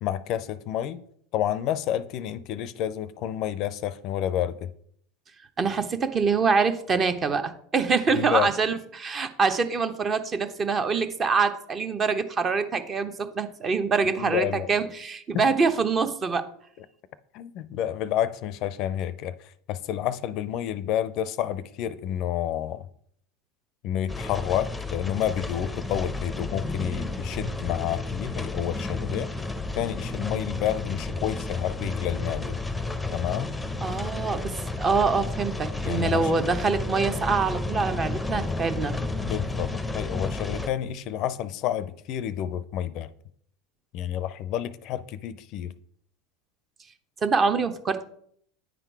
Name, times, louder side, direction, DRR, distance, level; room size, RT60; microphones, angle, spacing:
voice 1, 0.0-1.0 1.3-4.7 8.1-8.5 14.2-14.7 15.3-15.5 17.3-22.9 23.8-29.3 29.7-32.6 33.1-33.5 35.8-36.3 39.2-43.1 43.9-45.7, left 11 dB, 55° left, 0.4 m, -29 dB
voice 2, 5.6-16.4 33.8-38.9 47.2-48.0, right 5 dB, 30° right, 0.8 m, -25 dB
sound 1, 24.1-40.7, left 2 dB, 5° left, 0.6 m, -32 dB
9.2 x 3.8 x 4.6 m
hypercardioid pair, 105°, 0 cm